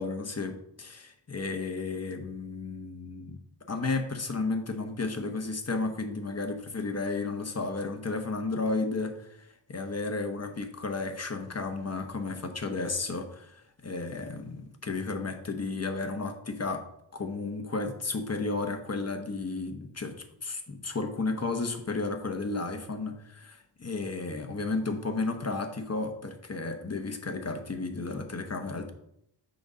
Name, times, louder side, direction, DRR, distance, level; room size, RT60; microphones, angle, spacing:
voice 1, 0.0-3.4 3.7-16.9 17.1-28.9, left 3 dB, 35° left, 5 dB, 1.0 m, -33 dB
6.7 x 4.0 x 5.1 m, 0.77 s
wide cardioid pair, 75°, 45 cm